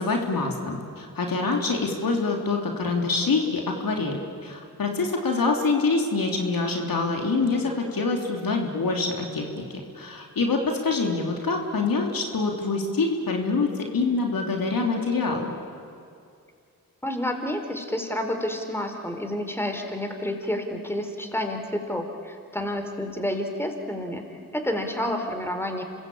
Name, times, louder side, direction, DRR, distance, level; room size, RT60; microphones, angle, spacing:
voice 1, 0.0-9.6 9.9-15.5, left 3 dB, 65° left, 1 dB, 3.2 m, -25 dB
voice 2, 17.0-24.2 24.5-25.8, left 1 dB, 5° left, 5 dB, 4.2 m, -29 dB
27.0 x 20.5 x 8.8 m, 2.4 s
supercardioid pair, 45°, 37 cm